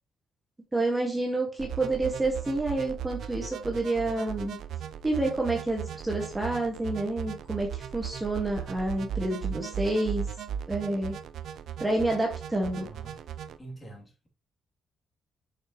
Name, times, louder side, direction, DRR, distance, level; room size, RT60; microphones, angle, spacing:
voice 1, 0.7-4.6 5.0-10.2 10.7-11.1 11.8-12.9, right 2 dB, 15° right, 1.6 m, -29 dB
sound 1, 1.6-13.6, right 8 dB, 70° right, 0.6 m, -37 dB
voice 2, 13.6-14.3, right 2 dB, 20° left, 2.8 m, -45 dB
6.8 x 6.3 x 3.0 m
cardioid pair, 140°, 0 cm